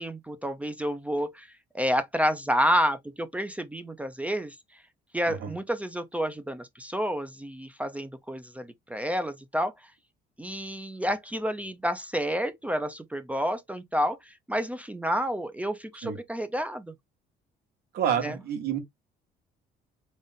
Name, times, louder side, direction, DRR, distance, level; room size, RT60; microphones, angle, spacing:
voice 1, 0.0-4.8 5.1-9.9 10.4-16.9 18.2-18.4, equal, 10° right, 0.5 m, -30 dB
voice 2, 17.9-18.8, right 9 dB, 70° right, 1.9 m, -28 dB
4.0 x 2.4 x 3.7 m
cardioid pair, 110°, 17 cm